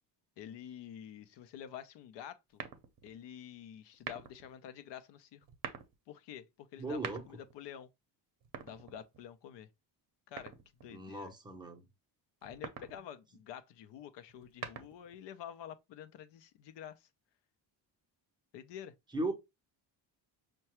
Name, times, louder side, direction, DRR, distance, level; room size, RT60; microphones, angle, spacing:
voice 1, 0.4-2.6 3.0-5.5 6.1-7.9 8.6-9.7 10.3-10.5 10.8-11.3 12.4-17.1 18.5-19.0, left 9 dB, 75° left, 0.6 m, -48 dB
sound 1, 2.5-3.2 3.9-4.5 5.4-5.9 6.8-7.6 8.4-9.3 10.4-11.0 12.4-13.0 14.3-15.2, right 8 dB, 50° right, 0.6 m, -45 dB
voice 2, 6.8-7.2 10.9-11.8 19.1-19.3, right 2 dB, 10° right, 0.6 m, -37 dB
5.6 x 2.2 x 2.9 m
cardioid pair, 170°, 43 cm